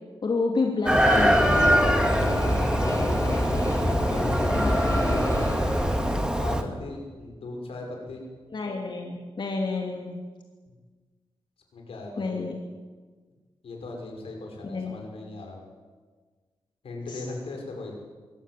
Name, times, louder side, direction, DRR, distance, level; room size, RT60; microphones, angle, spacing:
voice 1, 0.2-1.6 4.6-4.9 6.6-6.7 8.5-10.2 12.2-12.5 14.7-14.9 17.1-17.2, left 3 dB, 55° left, 0 dB, 2.8 m, -29 dB
sound 1, 0.9-6.3, left 2 dB, 35° left, 7.3 m, -28 dB
Chicken rooster, 0.9-6.6, right 1 dB, 10° right, 2.3 m, -23 dB
voice 2, 3.0-3.4 3.9-5.9 6.3-8.3 10.7-10.8 11.7-12.4 13.6-15.6 16.8-18.0, left 2 dB, 85° left, 1 dB, 5.7 m, -38 dB
24.0 x 18.0 x 7.7 m, 1.4 s
cardioid pair, 75°, 10 cm